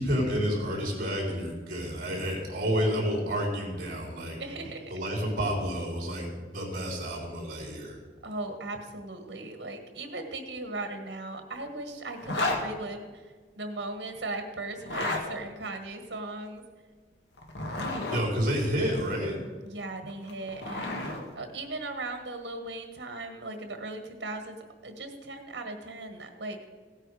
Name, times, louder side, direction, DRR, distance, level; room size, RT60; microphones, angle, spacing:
voice 1, 0.0-4.4 4.9-8.0 18.1-19.4, equal, 55° right, -1 dB, 4.2 m, -30 dB
voice 2, 4.4-4.9 8.2-16.6 19.6-24.6 24.8-26.7, right 2 dB, 90° right, 5 dB, 1.5 m, -38 dB
Zipper (clothing), 12.2-12.6 14.8-15.2 17.4-18.2 20.1-21.2, left 2 dB, 75° left, 2.0 m, -31 dB
16.5 x 9.0 x 4.9 m, 1.5 s
head